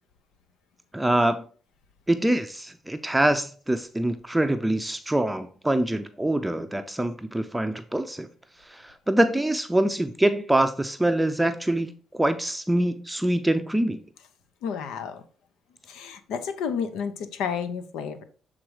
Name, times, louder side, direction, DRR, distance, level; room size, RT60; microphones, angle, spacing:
voice 1, 0.9-1.4 2.1-8.3 8.6-14.0, right 1 dB, 10° right, 0.5 m, -24 dB
voice 2, 14.6-15.2 15.9-18.2, left 7 dB, 90° left, 0.8 m, -31 dB
7.5 x 3.8 x 4.8 m
cardioid pair, 90°, 0 cm